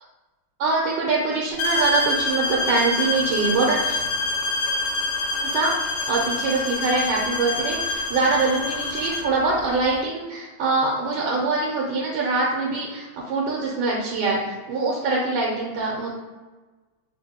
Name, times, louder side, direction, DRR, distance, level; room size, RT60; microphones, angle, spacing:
voice 1, 0.6-4.0 5.4-16.1, right 3 dB, 85° right, -4 dB, 1.5 m, -24 dB
sound 1, 1.6-9.3, left 3 dB, 85° left, 1.4 m, -26 dB
3.7 x 2.6 x 2.8 m, 1.3 s
omnidirectional pair, 2.2 m